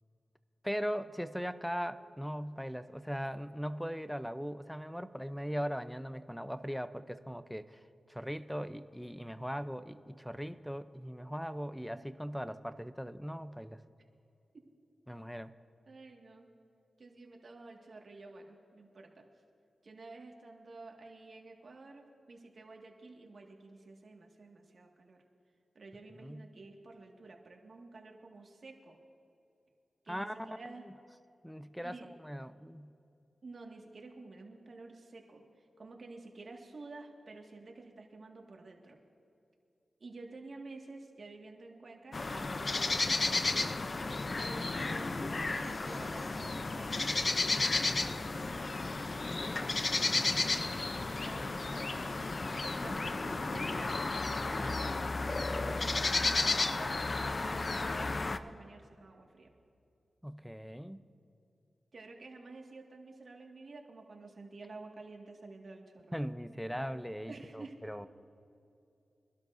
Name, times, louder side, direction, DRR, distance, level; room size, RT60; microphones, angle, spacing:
voice 1, 0.6-7.8 8.1-13.8 15.1-15.5 26.2-26.5 30.1-30.7 31.4-32.9 47.6-48.1 50.1-50.4 60.2-61.0 66.1-68.1, equal, ahead, 12 dB, 0.6 m, -39 dB
voice 2, 15.9-16.5 17.0-19.2 19.8-25.2 25.8-29.0 30.0-30.9 31.8-32.1 33.4-35.4 35.8-39.0 40.0-43.5 44.4-45.1 45.4-47.0 47.4-49.1 49.4-52.2 52.8-54.0 54.4-55.9 56.4-59.5 61.9-66.2 67.3-67.7, right 3 dB, 65° right, 1 dB, 1.8 m, -51 dB
sound 1, 42.1-58.4, left 3 dB, 50° left, 0.6 m, -33 dB
24.0 x 12.0 x 2.6 m, 2.7 s
cardioid pair, 50°, 0 cm